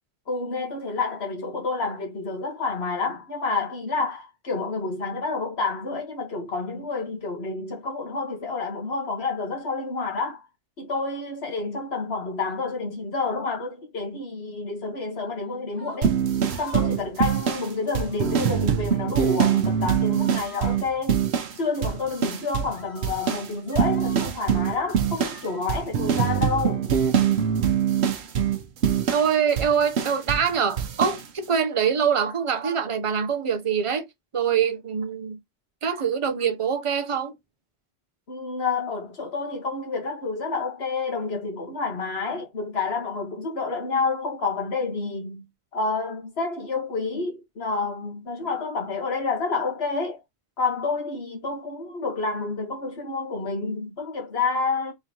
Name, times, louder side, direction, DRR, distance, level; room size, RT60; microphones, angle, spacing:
voice 1, 0.3-10.4 10.8-16.2 16.6-21.2 21.5-26.9 38.3-45.4 45.7-50.2 50.6-54.9, left 4 dB, 75° left, 1.6 m, -29 dB
sound 1, 15.7-16.0 16.4-17.0 17.3-17.5 17.9-18.4 18.9-19.4 19.7-19.9 20.2-20.8 21.8-22.0 22.7-23.0 23.5-24.3 25.1-25.6, left 2 dB, 30° left, 1.6 m, -47 dB
sound 2, 16.0-21.6 21.8-22.8 23.0-30.5 30.8-31.2, right 8 dB, 80° right, 1.0 m, -24 dB
voice 2, 29.1-34.1 34.3-35.4 35.8-37.3, right 7 dB, 35° right, 0.7 m, -24 dB
3.8 x 3.5 x 2.8 m
omnidirectional pair, 1.1 m